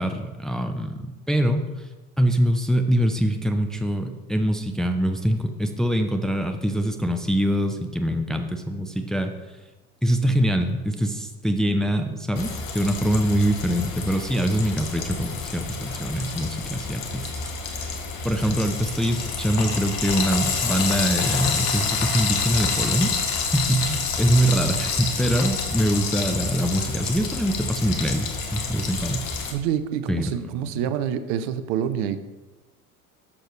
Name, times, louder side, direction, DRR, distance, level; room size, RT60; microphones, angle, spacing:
voice 1, 0.0-1.9 2.2-9.3 10.0-18.0 18.2-23.1 23.4-29.2 30.1-30.4, equal, ahead, 6 dB, 0.6 m, -24 dB
Frying (food), 12.4-29.5, left 5 dB, 55° left, 1.5 m, -28 dB
voice 2, 29.5-32.3, right 9 dB, 55° right, 11 dB, 0.8 m, -27 dB
11.0 x 6.6 x 3.2 m, 1.2 s
figure-of-eight pair, 70°, 45 cm